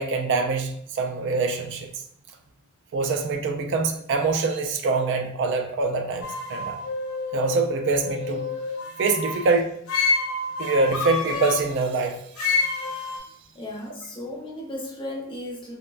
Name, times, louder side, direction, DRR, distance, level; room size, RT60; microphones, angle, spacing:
voice 1, 0.0-1.9 2.9-6.8 7.3-8.5 9.0-9.7 10.6-12.2, right 3 dB, 60° right, 4 dB, 0.3 m, -24 dB
sound 1, 6.2-9.5 9.9-11.6 12.4-13.2, left 4 dB, 85° left, 0.5 m, -28 dB
voice 2, 13.5-15.7, left 1 dB, 25° left, -2 dB, 0.6 m, -35 dB
3.0 x 2.1 x 2.4 m, 0.67 s
head